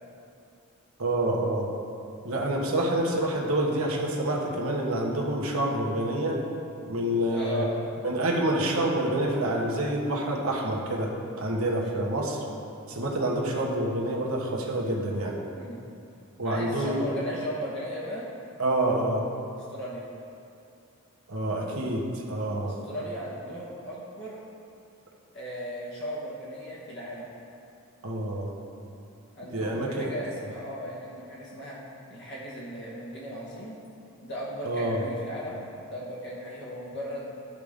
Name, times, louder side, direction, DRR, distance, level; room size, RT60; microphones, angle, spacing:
voice 1, 1.0-1.7 2.2-6.4 6.9-7.7 8.0-11.1 11.4-12.4 12.9-15.4 16.4-17.1 18.6-19.3 21.3-22.8 28.0-28.5 29.5-30.1 34.6-35.0, right 1 dB, 80° right, -1 dB, 1.2 m, -27 dB
voice 2, 7.3-7.8 11.8-12.0 15.5-15.8 16.4-18.3 19.6-20.1 22.6-24.4 25.3-27.3 29.3-31.8 32.1-33.8 34.2-37.4, equal, 50° left, -6 dB, 1.3 m, -37 dB
13.5 x 5.1 x 3.6 m, 2.6 s
head